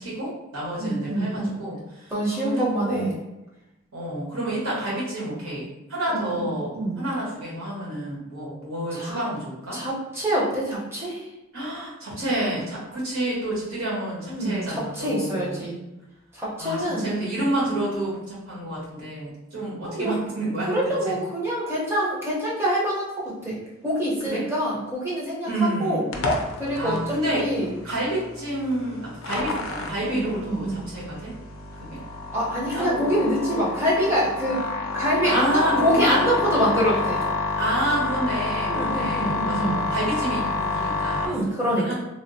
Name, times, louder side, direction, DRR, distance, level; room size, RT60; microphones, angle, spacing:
voice 1, 0.0-3.1 3.9-9.8 11.5-15.6 16.6-20.7 21.0-21.1 24.2-24.5 25.5-26.3 26.7-27.5 27.8-31.3 31.9-32.0 32.7-33.1 35.2-36.3 37.6-41.9, right 1 dB, 80° right, -6 dB, 1.3 m, -29 dB
voice 2, 0.8-1.5 2.1-3.1 6.1-6.5 6.7-7.0 9.0-9.2 9.7-11.2 14.3-15.8 16.4-17.1 19.8-20.1 20.7-23.1 23.4-23.5 23.8-25.5 25.8-26.0 26.6-27.0 27.3-27.7 30.0-30.9 32.3-34.6 34.9-37.2 38.7-39.8 41.2-41.9, equal, 10° right, -7 dB, 0.8 m, -25 dB
sound 1, 26.1-41.3, left 3 dB, 70° left, 0.4 m, -29 dB
3.4 x 2.0 x 2.7 m, 0.97 s
head